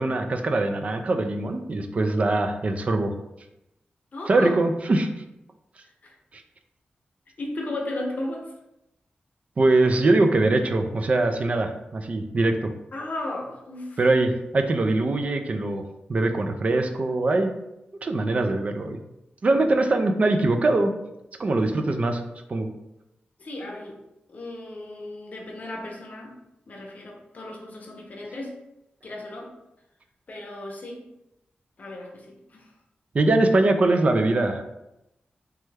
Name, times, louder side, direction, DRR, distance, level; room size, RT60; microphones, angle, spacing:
voice 1, 0.0-3.1 4.3-5.1 6.3-6.4 9.6-12.7 14.0-17.5 18.0-19.0 19.4-20.9 21.4-22.2 22.5-22.7 33.1-34.6, right 2 dB, 40° right, 6 dB, 0.3 m, -22 dB
voice 2, 4.1-4.6 5.8-6.2 7.4-8.5 12.9-14.0 23.4-24.0 24.3-26.3 26.7-28.5 29.0-29.5 30.3-31.0 31.8-32.7, left 1 dB, 50° left, 0 dB, 0.6 m, -35 dB
3.1 x 2.2 x 3.3 m, 0.88 s
wide cardioid pair, 135°, 3 cm